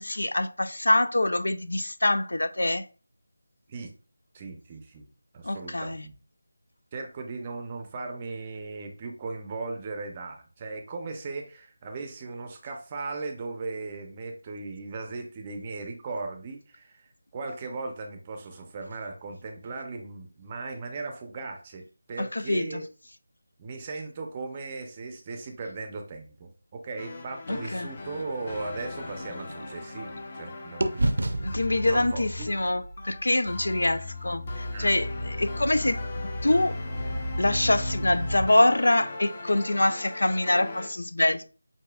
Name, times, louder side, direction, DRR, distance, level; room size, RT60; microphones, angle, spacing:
voice 1, 0.0-2.8 5.4-6.0 22.2-22.8 27.5-27.9 31.4-36.0 36.4-36.8 37.4-41.5, left 1 dB, 85° left, 0.6 m, -25 dB
voice 2, 4.3-5.1 5.3-6.2 6.9-22.9 23.6-32.5 34.7-35.4, right 3 dB, 20° right, 0.6 m, -38 dB
sound 1, 27.0-40.9, left 2 dB, 30° left, 0.7 m, -36 dB
sound 2, 28.1-30.4 30.8-34.8, right 1 dB, 65° right, 0.6 m, -33 dB
7.9 x 2.6 x 2.3 m
figure-of-eight pair, 170°, 0 cm